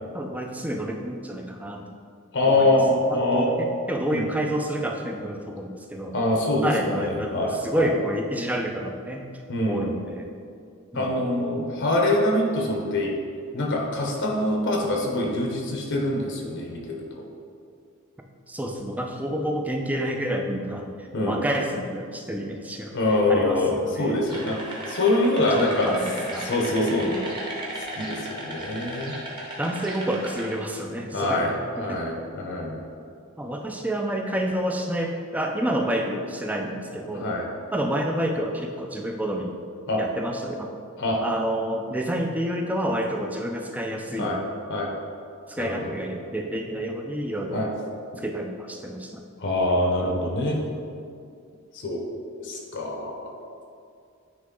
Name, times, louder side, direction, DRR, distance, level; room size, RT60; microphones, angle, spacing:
voice 1, 0.1-1.9 2.4-6.1 6.6-9.3 9.7-10.3 10.9-11.1 18.5-24.2 25.5-26.5 26.9-27.2 29.6-32.0 33.4-37.3 37.7-39.6 40.0-40.7 41.2-44.4 45.5-47.7 48.2-49.2, right 1 dB, 5° right, 2 dB, 0.4 m, -29 dB
voice 2, 2.3-3.5 4.1-4.3 6.1-7.9 9.5-9.9 10.9-13.1 13.5-17.2 21.1-21.4 22.9-24.6 24.9-25.9 26.4-27.1 27.9-29.2 31.1-31.5 31.8-32.8 37.1-37.5 39.9-40.0 41.0-41.2 44.2-44.4 44.7-44.9 45.6-45.8 47.5-47.7 49.4-50.6 51.7-52.0 52.4-53.3, left 1 dB, 55° left, 0 dB, 0.8 m, -24 dB
sound 1, 24.2-30.5, right 1 dB, 20° right, 1.1 m, -36 dB
9.5 x 3.2 x 3.7 m, 2.4 s
head